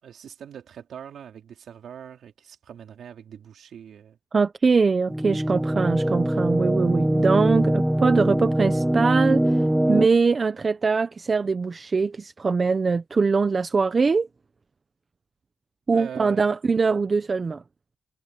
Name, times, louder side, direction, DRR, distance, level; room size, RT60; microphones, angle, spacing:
voice 1, 0.0-4.2 15.9-16.4, right 8 dB, 50° right, 4.0 m, -42 dB
voice 2, 4.3-14.3 15.9-17.6, right 4 dB, 25° right, 0.8 m, -22 dB
sound 1, 5.1-10.1, right 1 dB, 5° right, 1.1 m, -22 dB
cardioid pair, 160°, 0 cm